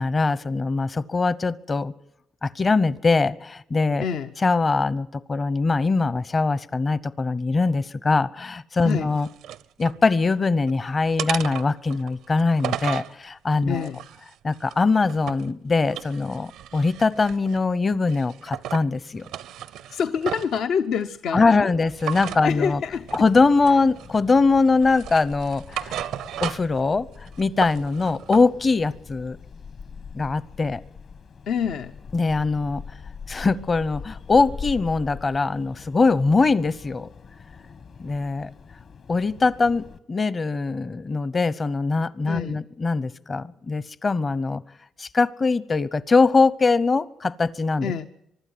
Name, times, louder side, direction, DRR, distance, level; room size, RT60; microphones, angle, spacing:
voice 1, 0.0-1.9 2.4-4.0 4.4-9.3 9.8-13.9 14.4-19.3 21.3-22.8 23.1-26.0 26.4-29.4 30.1-30.8 32.1-32.8 33.3-37.1 38.0-38.5 39.1-44.6 45.0-48.1, left 3 dB, 30° left, 19 dB, 0.8 m, -22 dB
voice 2, 4.0-4.3 8.8-9.1 13.7-14.0 19.9-21.7 22.2-23.1 31.5-31.9 42.3-42.6 47.8-48.1, left 7 dB, 75° left, 7 dB, 0.7 m, -27 dB
sound 1, 8.8-10.0 10.4-10.8 11.2-13.1 13.7-15.5 15.8-17.7 18.1-18.9 19.2-20.6 22.0-22.4 23.1-23.3 23.7-24.4 24.8-26.8 27.1-28.5, right 11 dB, 90° right, 0.7 m, -34 dB
sound 2, 21.9-40.0, left 6 dB, 60° left, 1.7 m, -43 dB
24.0 x 12.0 x 9.5 m, 0.82 s
cardioid pair, 90°, 0 cm